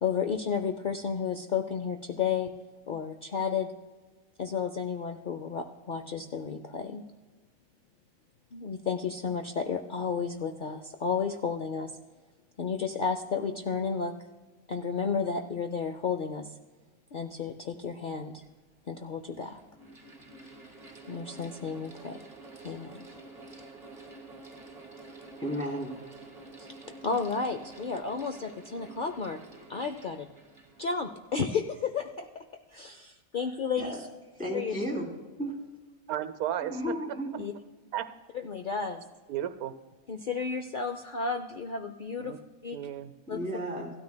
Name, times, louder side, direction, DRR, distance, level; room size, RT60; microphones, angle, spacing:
voice 1, 0.0-2.5 2.9-3.7 4.4-7.0 8.5-11.9 12.6-14.1 14.7-16.5 17.1-18.4 18.9-19.6 21.1-22.2 22.6-23.0 26.6-26.7 27.0-30.3 30.8-32.4 32.7-34.0 34.5-34.8 37.4-37.5 38.4-39.0 40.1-42.3 42.6-42.8 43.3-43.4, left 6 dB, 80° left, 6 dB, 0.4 m, -32 dB
Mechanical fan, 19.0-31.7, right 2 dB, 25° right, 1.4 m, -49 dB
voice 2, 25.4-26.0 33.8-34.0 34.4-35.1 35.4-35.5 36.7-37.5 43.3-43.9, equal, 5° right, 1 dB, 2.7 m, -33 dB
voice 3, 36.1-36.9 37.9-38.1 39.3-39.7 42.2-42.4 42.7-43.1, right 11 dB, 80° right, 12 dB, 1.1 m, -33 dB
16.0 x 13.0 x 2.2 m, 1.3 s
omnidirectional pair, 1.5 m